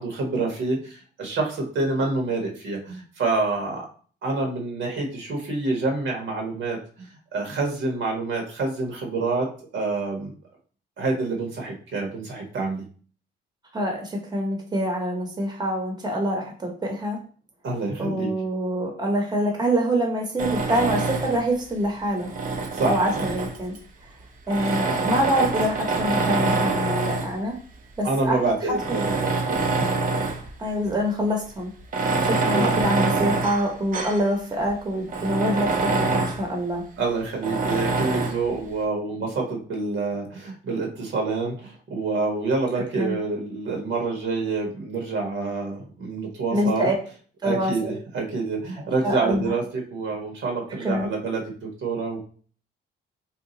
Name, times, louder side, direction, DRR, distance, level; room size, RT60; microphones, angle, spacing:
voice 1, 0.0-3.9 4.2-10.3 11.0-12.8 17.6-18.3 22.7-23.2 28.0-29.9 32.5-32.7 37.0-46.9 47.4-52.2, right 3 dB, 75° right, 0 dB, 1.2 m, -27 dB
voice 2, 13.7-17.2 18.0-22.3 22.8-23.7 24.5-27.6 28.0-28.4 28.7-28.8 30.6-31.7 32.2-36.9 42.9-43.2 46.5-46.9 47.4-48.0 49.0-49.5 50.7-51.1, equal, 20° right, 1 dB, 1.0 m, -25 dB
Tools, 20.4-21.5 22.2-23.8 24.5-27.4 28.1-28.2 28.7-30.5 30.8-30.9 31.8-34.3 34.7-34.8 35.1-36.5 37.4-38.4, right 3 dB, 45° right, 0.6 m, -25 dB
2.8 x 2.3 x 3.8 m, 0.42 s
cardioid pair, 90°, 20 cm